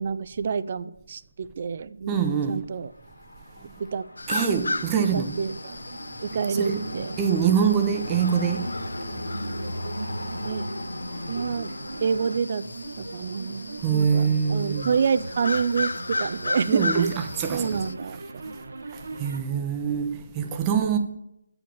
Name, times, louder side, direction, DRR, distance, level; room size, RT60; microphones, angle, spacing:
voice 1, 0.0-2.1 2.5-2.9 3.8-4.1 5.1-5.7 6.2-7.2 10.4-10.7 11.3-12.6 13.0-17.1 17.5-18.5, right 6 dB, 40° right, 0.4 m, -28 dB
voice 2, 2.1-2.7 4.3-5.4 6.5-8.7 13.8-14.9 16.7-17.9 18.9-21.0, right 7 dB, 15° right, 0.8 m, -25 dB
sound 1, 2.7-12.4, left 1 dB, 90° left, 2.3 m, -37 dB
sound 2, 4.2-17.9, left 2 dB, 70° left, 0.5 m, -35 dB
sound 3, 4.3-19.4, right 2 dB, 55° right, 1.0 m, -40 dB
8.8 x 5.0 x 7.0 m
figure-of-eight pair, 155°, 0 cm